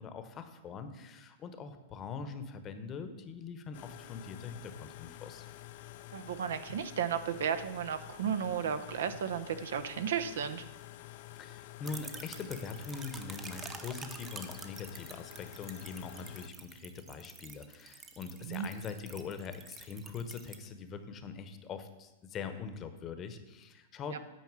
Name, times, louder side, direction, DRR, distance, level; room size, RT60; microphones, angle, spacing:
voice 1, 0.0-5.5 11.4-24.2, left 5 dB, 30° left, 9 dB, 1.0 m, -43 dB
sound 1, 3.7-16.5, left 14 dB, 60° left, 0.5 m, -49 dB
voice 2, 6.1-10.7 18.5-18.7 24.1-24.2, right 8 dB, 80° right, 10 dB, 0.7 m, -34 dB
sound 2, 11.8-20.6, right 5 dB, 25° right, 0.8 m, -48 dB
9.5 x 4.3 x 7.4 m, 1.1 s
hypercardioid pair, 125°, 0 cm